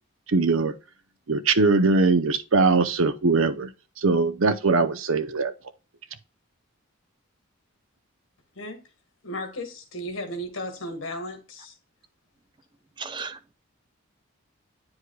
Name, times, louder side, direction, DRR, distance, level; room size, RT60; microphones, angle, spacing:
voice 1, 0.3-0.7 1.3-3.7 4.0-5.5, right 3 dB, 75° right, 0.7 m, -21 dB
voice 2, 9.2-11.7, left 1 dB, 70° left, 1.6 m, -35 dB
voice 3, 13.0-13.5, right 5 dB, 20° right, 0.4 m, -36 dB
9.6 x 4.8 x 2.2 m
head